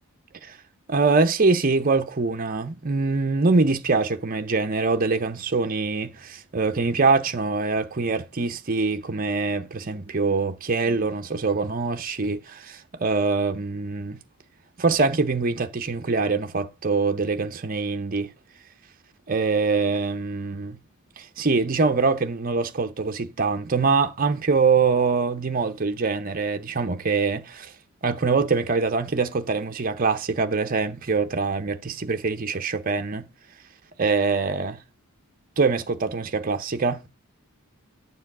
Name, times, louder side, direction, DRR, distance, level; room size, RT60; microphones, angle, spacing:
voice 1, 0.9-14.2 14.8-18.3 19.3-20.8 21.2-27.7 28.0-33.3 34.0-34.8 35.6-37.0, right 4 dB, 40° right, 0.8 m, -24 dB
10.5 x 7.0 x 3.7 m
head